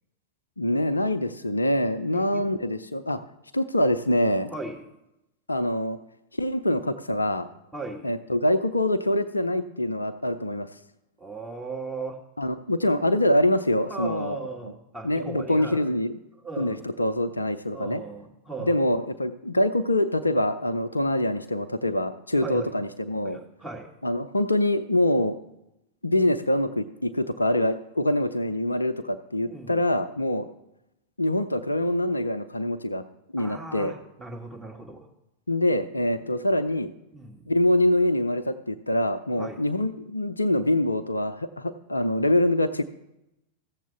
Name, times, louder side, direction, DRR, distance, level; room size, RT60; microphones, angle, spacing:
voice 1, 0.6-3.2 3.5-4.5 5.5-6.0 6.4-7.5 8.0-10.7 12.4-14.7 15.0-16.2 16.6-18.0 18.6-23.4 24.0-25.4 26.0-30.5 31.2-33.0 33.3-33.9 35.5-36.9 37.5-42.8, left 1 dB, 80° left, 11 dB, 0.5 m, -25 dB
voice 2, 2.1-2.4 4.5-4.8 7.7-8.1 11.2-12.2 13.9-15.9 16.4-16.8 17.7-18.9 22.4-22.7 23.2-23.9 29.4-29.8 33.4-35.0 37.1-37.5 39.4-39.6, right 3 dB, 10° right, -1 dB, 1.9 m, -37 dB
14.5 x 7.3 x 3.4 m, 0.88 s
figure-of-eight pair, 90°, 0 cm